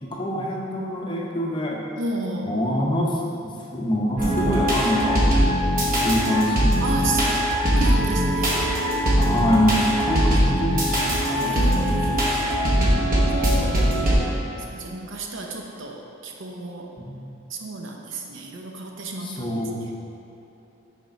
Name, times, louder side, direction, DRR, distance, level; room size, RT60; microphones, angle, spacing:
voice 1, 0.0-1.8 2.4-5.2 6.0-7.1 9.2-12.2 17.0-17.2 19.2-19.8, equal, 25° left, -2 dB, 0.6 m, -26 dB
voice 2, 2.0-2.6 6.8-7.4 7.7-8.8 10.0-10.4 11.3-13.9 14.7-16.9 17.5-19.9, right 2 dB, 70° right, 1 dB, 0.6 m, -32 dB
sound 1, 4.2-14.2, equal, 45° right, 1.1 m, -21 dB
6.4 x 3.4 x 5.0 m, 2.9 s
head